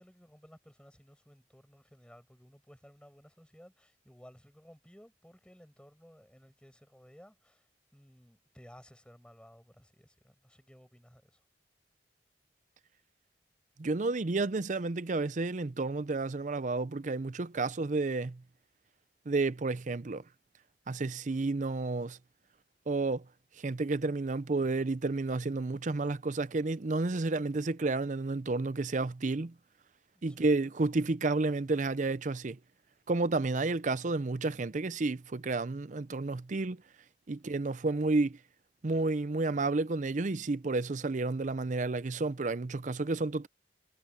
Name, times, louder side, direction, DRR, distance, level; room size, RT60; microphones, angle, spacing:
voice 1, 0.0-11.4 30.1-30.7, equal, 5° left, 7.9 m, -57 dB
voice 2, 13.8-18.4 19.3-20.2 20.9-22.2 22.9-23.2 23.6-29.5 30.2-32.6 33.1-36.8 37.3-38.4 38.8-43.5, right 3 dB, 45° right, 0.6 m, -31 dB
head